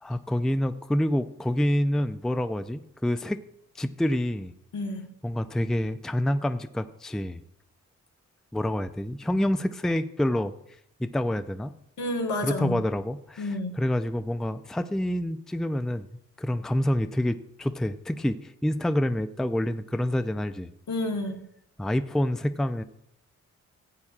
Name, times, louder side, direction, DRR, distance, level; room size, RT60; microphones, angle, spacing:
voice 1, 0.0-3.4 3.8-4.5 5.2-7.4 8.5-10.5 11.0-11.7 12.4-13.5 13.8-16.1 16.4-20.7 21.8-22.8, left 1 dB, ahead, 10 dB, 0.5 m, -27 dB
voice 2, 4.7-5.1 12.0-12.8 13.4-13.7 20.9-21.4, left 2 dB, 70° left, 2 dB, 1.5 m, -30 dB
15.0 x 8.6 x 2.4 m, 0.75 s
cardioid pair, 65°, 30 cm